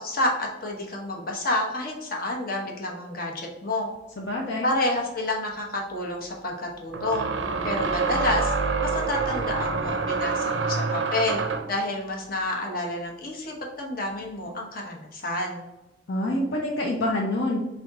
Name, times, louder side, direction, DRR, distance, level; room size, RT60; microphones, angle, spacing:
voice 1, 0.0-3.9 4.6-7.2 7.6-8.5 8.8-11.4 11.7-15.6, left 1 dB, 55° left, 0 dB, 1.0 m, -29 dB
voice 2, 4.2-4.7 16.1-17.6, left 1 dB, 70° left, -1 dB, 0.6 m, -26 dB
sound 1, 5.0-5.1 6.9-11.8, right 4 dB, 85° right, 0.5 m, -27 dB
3.7 x 3.4 x 3.6 m, 1.0 s
head